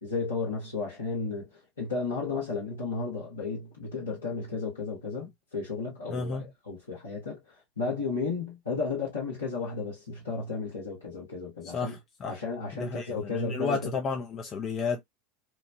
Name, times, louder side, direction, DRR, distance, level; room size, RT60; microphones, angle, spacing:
voice 1, 0.0-12.0 12.3-13.9, left 4 dB, 85° left, 1.2 m, -33 dB
voice 2, 6.1-6.4 11.7-12.4 12.7-15.0, left 4 dB, 35° left, 0.5 m, -32 dB
2.9 x 2.1 x 2.6 m
figure-of-eight pair, 80°, 0 cm